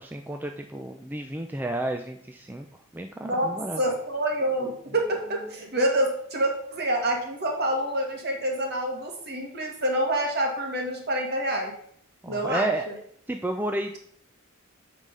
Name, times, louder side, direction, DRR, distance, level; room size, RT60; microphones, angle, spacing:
voice 1, 0.0-2.7 2.9-3.8 12.2-12.9 13.3-14.0, right 1 dB, 10° right, 4 dB, 0.4 m, -31 dB
voice 2, 3.2-11.7 12.3-12.9, right 1 dB, 50° right, 2 dB, 1.7 m, -27 dB
7.6 x 4.9 x 5.2 m, 0.64 s
head